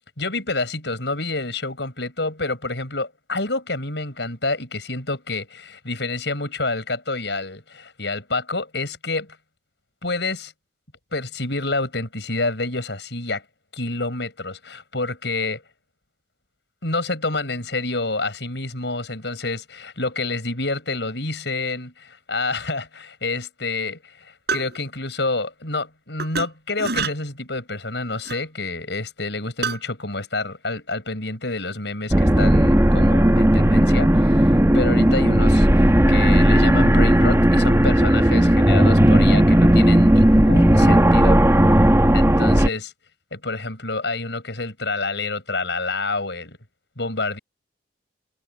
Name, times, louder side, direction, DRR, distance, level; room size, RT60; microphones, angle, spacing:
voice 1, 0.2-9.4 10.0-10.5 11.1-13.4 13.7-15.6 16.8-41.6 42.1-42.9 43.3-46.6 47.0-47.4, left 3 dB, 65° left, 7.6 m, -28 dB
sound 1, 24.5-24.8 26.2-26.5 26.8-27.1 28.2-28.4 29.6-29.8, right 5 dB, 60° right, 7.3 m, -26 dB
sound 2, 32.1-42.7, right 1 dB, 15° right, 1.2 m, -15 dB
head